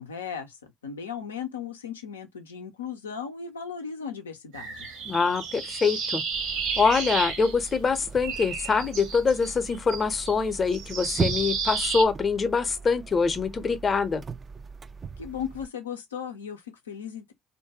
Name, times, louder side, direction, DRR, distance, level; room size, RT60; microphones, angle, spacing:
voice 1, 0.0-4.9 15.2-17.3, left 7 dB, 85° left, 0.5 m, -36 dB
sound 1, 4.5-8.0 8.2-12.0, right 5 dB, 70° right, 1.0 m, -32 dB
voice 2, 5.1-6.2 6.8-14.2, left 5 dB, 35° left, 0.7 m, -24 dB
sound 2, 6.3-15.7, right 5 dB, 35° right, 0.3 m, -38 dB
2.6 x 2.2 x 2.8 m
hypercardioid pair, 55°, 0 cm